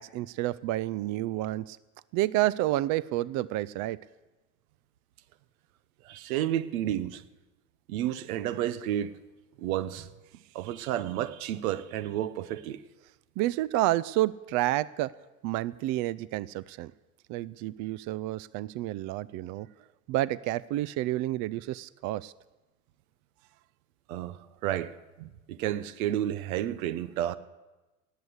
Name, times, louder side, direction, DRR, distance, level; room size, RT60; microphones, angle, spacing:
voice 1, 0.0-1.8 2.1-4.0 13.4-15.1 15.4-16.9 17.3-19.7 20.1-22.3, right 16 dB, 45° right, 0.5 m, -29 dB
voice 2, 6.0-7.2 7.9-9.1 9.6-10.1 10.5-12.8 24.1-27.4, right 12 dB, 75° right, 0.9 m, -31 dB
18.0 x 8.4 x 8.0 m
hypercardioid pair, 95°, 43 cm